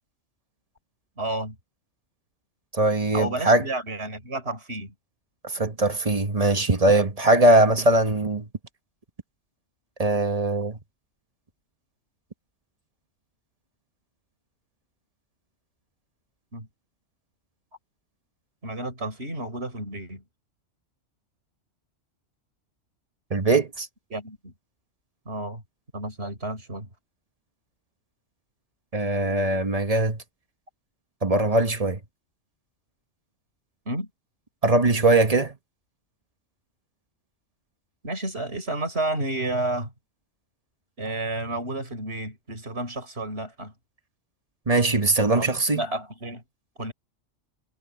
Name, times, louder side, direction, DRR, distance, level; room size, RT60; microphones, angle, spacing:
voice 1, 1.2-1.6 3.1-4.9 16.5-16.7 18.6-20.2 24.1-24.5 25.3-25.6 25.9-26.9 33.9-34.1 38.0-39.9 41.0-43.7 45.3-45.5 45.7-46.4 46.8-46.9, right 2 dB, 55° right, 5.7 m, -31 dB
voice 2, 2.7-3.6 5.4-8.4 10.0-10.8 23.3-23.9 28.9-30.2 31.2-32.0 34.6-35.5 44.7-45.8, right 2 dB, 30° right, 1.2 m, -21 dB
omnidirectional pair, 1.3 m